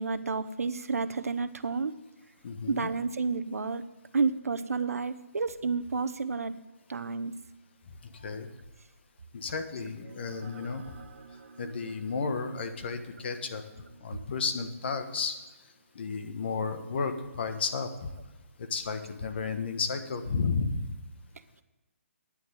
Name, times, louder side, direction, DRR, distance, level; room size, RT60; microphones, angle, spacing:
voice 1, 0.0-1.9 2.7-3.8 4.1-6.5 6.9-7.3, right 4 dB, 80° right, 12 dB, 0.8 m, -30 dB
voice 2, 2.4-2.9 8.1-8.5 9.3-10.8 11.6-13.6 14.0-15.4 15.9-18.1 18.6-20.9, left 4 dB, 45° left, 7 dB, 1.4 m, -32 dB
sound 1, 9.5-18.3, right 4 dB, 50° right, 1.6 m, -54 dB
10.0 x 6.2 x 8.8 m, 1.1 s
hypercardioid pair, 160°, 8 cm